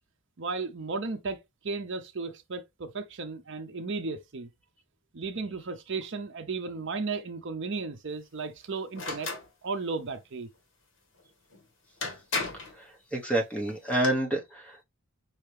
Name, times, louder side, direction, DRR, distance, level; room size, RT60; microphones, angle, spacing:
voice 1, 0.4-1.4 1.6-4.5 5.1-9.3 9.6-10.5, right 4 dB, 55° right, 0.6 m, -34 dB
sound 1, 8.9-9.5 11.5-11.6 12.0-12.7 13.7-14.1, left 3 dB, 55° left, 1.5 m, -33 dB
voice 2, 13.1-14.8, right 1 dB, 5° left, 1.0 m, -28 dB
5.5 x 2.9 x 3.3 m
head